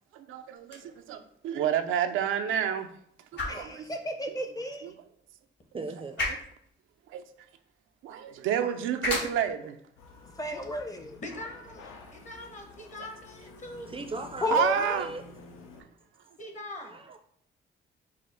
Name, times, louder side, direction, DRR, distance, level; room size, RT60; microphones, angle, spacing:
voice 1, 0.1-2.9 3.3-3.9 4.3-4.4 4.8-4.9 7.1-7.2 8.0-9.8 14.5-15.1 15.7-15.8, right 9 dB, 80° right, 0.4 m, -30 dB
sound 1, 0.6-12.6, left 2 dB, 65° left, 1.2 m, -41 dB
voice 2, 3.4-4.9 10.3-11.2 14.4-14.9, left 1 dB, 20° left, 0.6 m, -32 dB
voice 3, 5.7-6.2 13.9-15.2 16.8-17.2, right 3 dB, 25° right, 0.5 m, -38 dB
sound 2, 10.0-15.8, left 4 dB, 90° left, 0.7 m, -51 dB
voice 4, 11.2-13.9 16.4-17.0, left 1 dB, 40° left, 1.1 m, -42 dB
4.8 x 2.0 x 4.3 m
cardioid pair, 90°, 20 cm